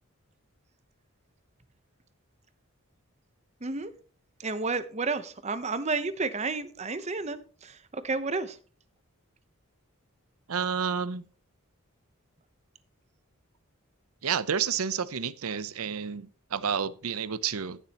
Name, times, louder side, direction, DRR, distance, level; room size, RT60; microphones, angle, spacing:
voice 1, 3.6-3.9 4.4-8.6, right 3 dB, 30° right, 0.9 m, -31 dB
voice 2, 10.5-11.2 14.2-17.8, right 7 dB, 80° right, 0.7 m, -30 dB
17.0 x 7.5 x 3.0 m
head